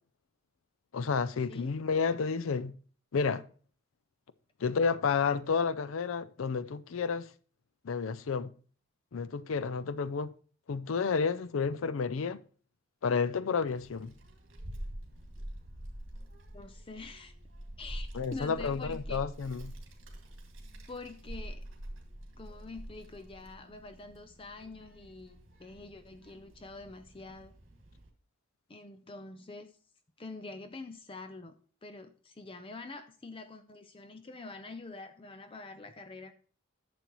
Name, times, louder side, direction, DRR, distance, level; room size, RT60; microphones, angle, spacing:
voice 1, 0.9-2.7 3.1-3.4 4.6-7.3 7.8-8.5 9.1-10.3 10.7-12.4 13.0-14.1 18.1-19.7, left 5 dB, 75° left, 0.5 m, -31 dB
Child speech kid speaking, 13.7-28.1, right 1 dB, 60° right, 2.1 m, -46 dB
voice 2, 16.5-17.3 17.8-19.3 20.9-21.6 22.4-27.5 28.7-29.7 30.2-31.5 31.8-36.3, left 3 dB, 25° left, 0.5 m, -46 dB
11.5 x 6.9 x 3.0 m
head